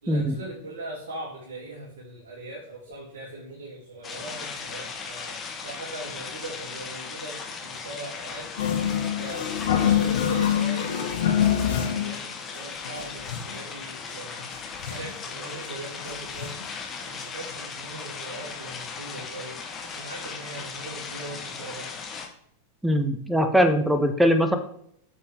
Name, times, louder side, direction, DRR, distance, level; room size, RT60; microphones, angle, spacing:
voice 1, 0.0-8.5 9.2-9.5 9.7-14.5 14.8-16.6 17.0-19.6 19.8-21.9, right 2 dB, 60° right, -7 dB, 2.7 m, -40 dB
sound 1, 4.0-22.3, left 5 dB, 25° left, 1.5 m, -37 dB
sound 2, 8.6-12.2 12.5-12.6 12.8-13.6 14.1-14.2 14.4-15.2 15.6-15.7 16.0-16.7 17.2-17.3 17.5-17.6, left 9 dB, 60° left, 1.4 m, -25 dB
voice 2, 22.8-24.6, equal, 5° right, 8 dB, 1.1 m, -21 dB
9.1 x 7.0 x 3.4 m, 0.70 s
figure-of-eight pair, 90°, 0 cm